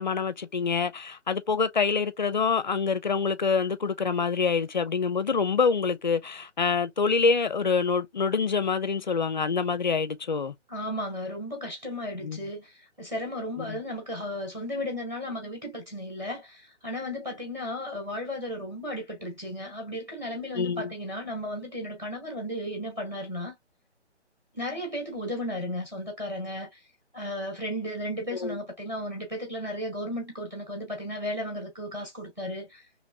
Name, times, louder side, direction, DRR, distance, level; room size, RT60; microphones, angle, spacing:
voice 1, 0.0-10.5 12.2-12.4 13.6-13.8 20.5-20.9 28.4-28.6, left 5 dB, 40° left, 0.4 m, -26 dB
voice 2, 10.7-23.5 24.5-26.8 27.1-32.8, left 1 dB, 10° right, 0.9 m, -34 dB
2.9 x 2.9 x 2.5 m
figure-of-eight pair, 145°, 35 cm